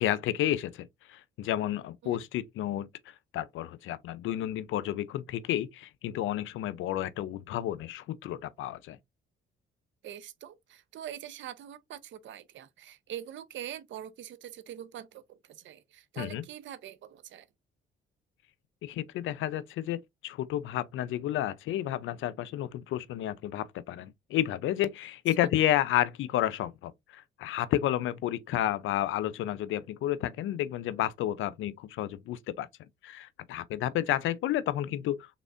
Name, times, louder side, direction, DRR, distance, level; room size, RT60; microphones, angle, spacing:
voice 1, 0.0-9.0 16.2-16.4 18.8-32.7 33.0-35.4, left 12 dB, 80° left, 0.5 m, -31 dB
voice 2, 10.0-17.5 25.3-25.5, right 11 dB, 70° right, 0.7 m, -44 dB
3.9 x 3.6 x 2.5 m
cardioid pair, 90°, 20 cm